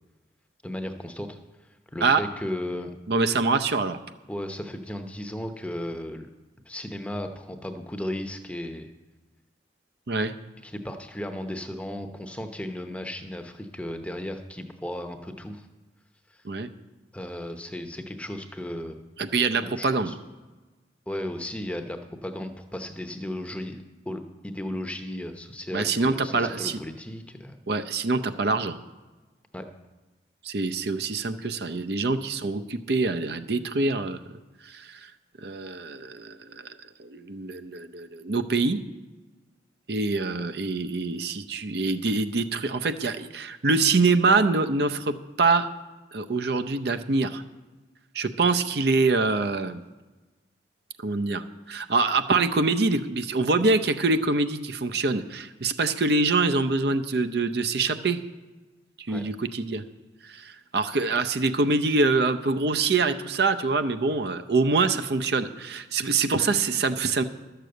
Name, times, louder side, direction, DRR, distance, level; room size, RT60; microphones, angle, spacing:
voice 1, 0.6-2.9 4.3-6.3 6.6-8.9 10.6-15.7 16.3-16.4 17.1-19.0 19.6-20.1 21.1-27.6 29.5-29.7 59.1-59.2, left 1 dB, 5° left, 6 dB, 0.8 m, -35 dB
voice 2, 3.1-4.0 10.1-10.3 16.4-16.7 19.2-20.1 25.7-26.8 27.7-28.8 30.4-34.2 34.6-35.1 35.4-38.8 39.9-45.7 46.1-47.4 48.1-49.8 51.0-58.2 59.0-59.8 60.2-67.2, right 3 dB, 60° right, 9 dB, 0.6 m, -25 dB
12.0 x 6.8 x 7.8 m, 1.2 s
head